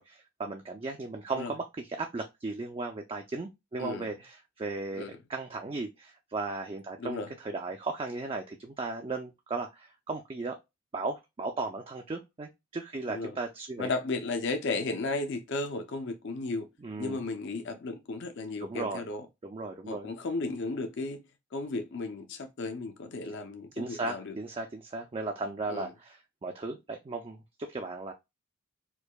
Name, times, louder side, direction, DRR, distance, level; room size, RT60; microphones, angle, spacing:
voice 1, 0.0-10.6 10.9-13.9 16.8-17.2 18.6-19.0 19.4-20.1 23.7-28.1, right 3 dB, 25° right, 0.3 m, -36 dB
voice 2, 7.0-7.3 13.1-13.4 13.8-16.7 17.0-19.3 19.9-21.2 21.5-24.3 25.7-25.9, left 3 dB, 50° left, 0.5 m, -34 dB
4.5 x 2.5 x 2.2 m
head